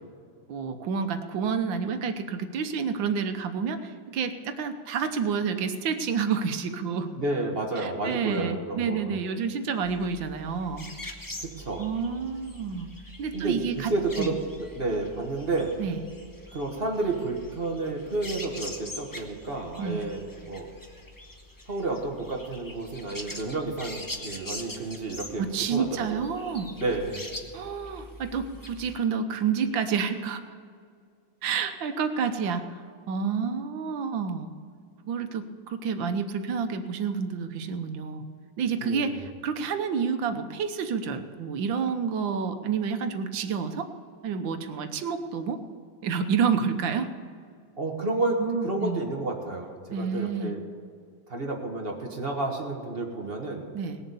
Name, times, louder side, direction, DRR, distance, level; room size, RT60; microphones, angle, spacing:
voice 1, 0.5-7.1 7.8-10.9 11.8-12.9 13.2-13.9 14.2-14.3 15.8-16.0 19.8-20.0 25.4-26.7 27.5-30.4 31.4-32.8 33.1-34.5 35.0-38.2 38.6-43.9 44.2-45.6 46.0-47.1 48.4-49.0 49.9-50.5 53.7-54.0, right 6 dB, 85° right, 9 dB, 1.7 m, -29 dB
voice 2, 7.2-9.1 11.4-11.9 13.3-15.8 16.5-20.7 21.7-26.3 26.8-27.2 38.8-39.2 47.8-50.6 51.3-53.7, right 2 dB, 35° right, 2 dB, 1.6 m, -31 dB
sound 1, 9.8-29.0, left 1 dB, 15° left, 0.8 m, -43 dB
19.5 x 7.2 x 6.9 m, 2.2 s
omnidirectional pair, 2.0 m